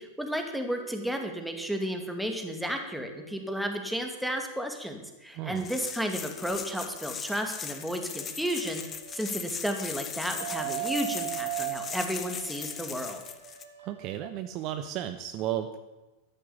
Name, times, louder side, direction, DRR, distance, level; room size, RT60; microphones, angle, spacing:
voice 1, 0.0-13.2, equal, ahead, 4 dB, 2.4 m, -33 dB
sound 1, 0.8-4.8 5.9-9.4 9.9-14.2, right 13 dB, 70° right, 1.9 m, -41 dB
voice 2, 5.3-5.6 13.8-15.8, right 11 dB, 40° right, 9 dB, 1.0 m, -34 dB
sound 2, 5.6-13.6, left 7 dB, 25° left, 1.4 m, -39 dB
13.5 x 10.5 x 8.6 m, 1.1 s
figure-of-eight pair, 90°, 0 cm